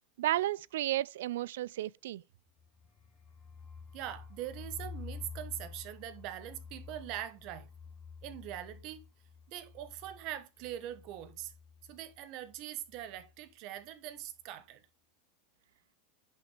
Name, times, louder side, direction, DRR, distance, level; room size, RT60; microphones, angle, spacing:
voice 1, 0.2-2.2, right 14 dB, 75° right, 0.4 m, -32 dB
sound 1, 2.5-12.2 12.5-12.6 12.9-13.3, left 5 dB, 20° left, 3.7 m, -50 dB
voice 2, 3.9-7.7 8.2-9.0 9.5-11.5 11.9-14.8, right 12 dB, 40° right, 1.3 m, -42 dB
10.0 x 7.0 x 3.4 m
supercardioid pair, 165°, 0 cm